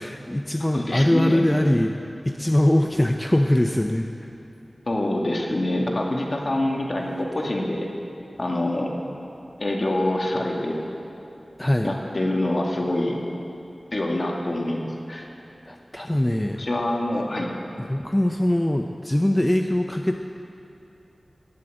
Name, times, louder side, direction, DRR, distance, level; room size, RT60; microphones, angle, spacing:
voice 1, 0.0-2.0 2.2-4.1 11.6-11.9 15.7-16.7 17.8-20.3, left 1 dB, 15° left, 4 dB, 0.6 m, -22 dB
voice 2, 0.7-1.4 4.9-7.9 8.4-8.9 9.6-10.8 11.8-13.2 13.9-15.3 16.6-17.5, left 1 dB, 50° left, 0 dB, 2.2 m, -25 dB
18.5 x 8.2 x 7.9 m, 2.9 s
wide cardioid pair, 65°, 0 cm